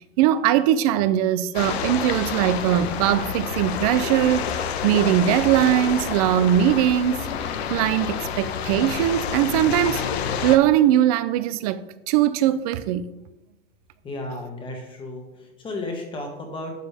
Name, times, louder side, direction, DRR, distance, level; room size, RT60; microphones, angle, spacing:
voice 1, 0.2-4.5 4.8-7.3 7.7-10.0 10.4-13.1, right 11 dB, 35° right, 0.5 m, -20 dB
sound 1, 1.5-10.6, left 7 dB, 75° left, 1.1 m, -28 dB
voice 2, 14.0-16.7, left 2 dB, 15° left, 1.6 m, -34 dB
11.5 x 7.3 x 3.5 m
supercardioid pair, 160°, 32 cm